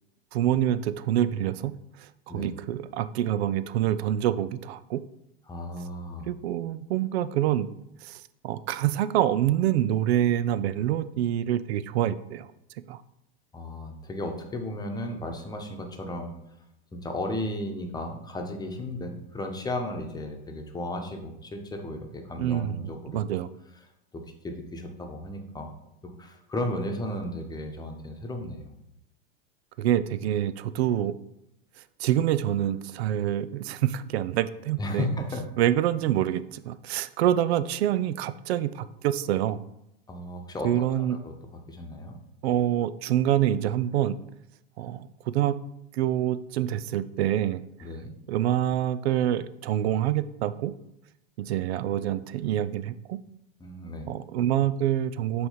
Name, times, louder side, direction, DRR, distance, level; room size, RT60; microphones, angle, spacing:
voice 1, 0.3-1.7 2.3-5.0 6.3-7.7 8.0-12.5 12.9-13.0 22.4-23.5 29.8-31.1 32.0-35.1 35.6-39.6 40.6-41.2 42.4-44.2 44.8-45.6 45.9-47.6 48.3-50.7 51.4-53.2 54.1-55.5, right 11 dB, 75° right, 15 dB, 0.5 m, -26 dB
voice 2, 5.5-6.3 13.5-16.3 16.9-23.2 24.1-25.7 26.2-28.7 34.8-35.4 40.1-40.7 41.0-41.3 41.7-42.2 47.8-48.1 53.6-54.1, left 1 dB, 10° left, 3 dB, 1.0 m, -34 dB
5.9 x 3.1 x 5.6 m, 0.83 s
hypercardioid pair, 105°, 32 cm